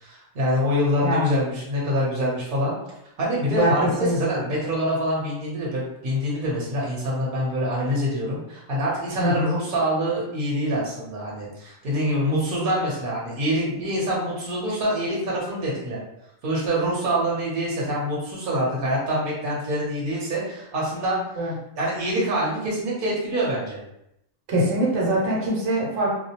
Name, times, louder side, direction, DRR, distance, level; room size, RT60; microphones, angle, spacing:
voice 1, 0.0-2.7 3.2-16.0 16.4-21.2 21.8-23.8, equal, 50° right, -5 dB, 0.9 m, -25 dB
voice 2, 1.0-1.4 3.5-4.4 9.2-9.5 21.4-21.5 24.5-26.1, right 1 dB, 75° right, -4 dB, 1.1 m, -23 dB
2.3 x 2.0 x 2.8 m, 0.82 s
omnidirectional pair, 1.3 m